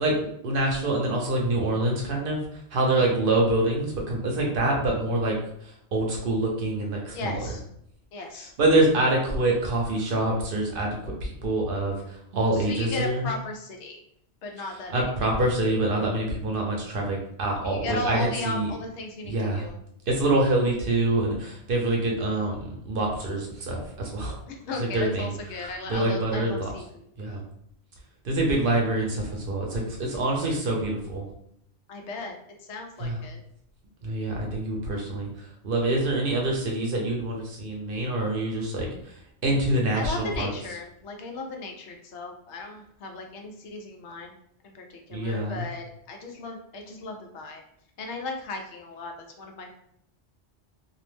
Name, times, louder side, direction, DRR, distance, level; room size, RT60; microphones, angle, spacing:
voice 1, 0.0-5.4 5.6-7.4 8.6-13.2 14.9-18.7 19.2-19.6 20.1-24.4 24.9-25.3 25.6-26.7 27.2-27.4 28.2-31.2 33.0-33.2 34.0-39.1 39.4-40.5 45.1-45.6, right 2 dB, 60° right, -1 dB, 0.8 m, -26 dB
voice 2, 2.7-3.1 7.1-7.6 8.1-8.5 12.5-14.0 14.4-15.0 15.4-15.5 17.6-19.8 24.5-27.1 31.9-32.3 32.6-33.4 39.9-44.3 44.6-47.6 48.0-49.7, left 3 dB, 90° left, 2 dB, 0.9 m, -36 dB
2.5 x 2.0 x 3.1 m, 0.71 s
omnidirectional pair, 1.1 m